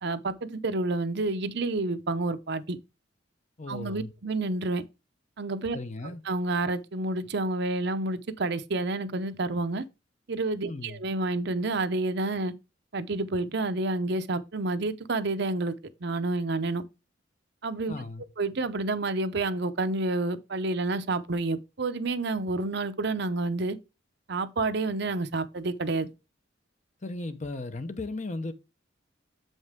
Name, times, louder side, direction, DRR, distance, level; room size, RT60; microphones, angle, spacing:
voice 1, 0.0-2.8 3.7-4.8 5.4-5.8 6.3-9.8 10.3-12.5 12.9-15.7 16.0-16.8 17.6-17.9 18.4-23.8 24.3-26.1, right 2 dB, 60° right, 0.7 m, -29 dB
voice 2, 3.6-4.1 5.7-6.2 10.6-11.0 17.9-18.2 27.0-28.5, left 2 dB, 40° left, 0.9 m, -36 dB
7.3 x 5.3 x 3.6 m
head